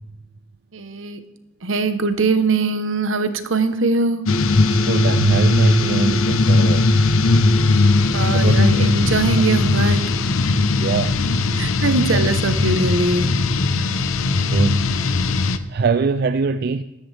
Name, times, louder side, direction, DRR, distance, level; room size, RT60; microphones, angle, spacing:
voice 1, 0.7-1.2 1.6-4.2 8.1-10.0 11.6-13.3, right 3 dB, 70° right, 1.0 m, -21 dB
sound 1, 4.3-15.6, left 3 dB, 80° left, 0.7 m, -18 dB
voice 2, 4.7-6.9 8.3-8.6 10.8-11.2 12.1-12.2 13.7-14.0 14.3-14.9 15.7-16.8, right 4 dB, 50° right, 0.3 m, -21 dB
14.0 x 11.5 x 3.4 m
head